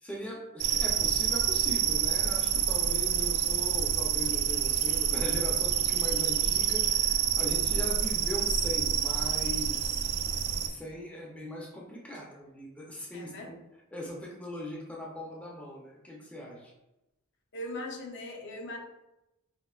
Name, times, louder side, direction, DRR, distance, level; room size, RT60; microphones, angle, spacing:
voice 1, 0.0-16.7, left 1 dB, 5° left, -3 dB, 0.4 m, -40 dB
sound 1, 0.6-10.7, right 9 dB, 85° right, 0.3 m, -28 dB
voice 2, 13.1-13.5 17.5-18.8, left 1 dB, 60° left, 3 dB, 0.5 m, -39 dB
4.2 x 2.5 x 2.3 m, 0.92 s
head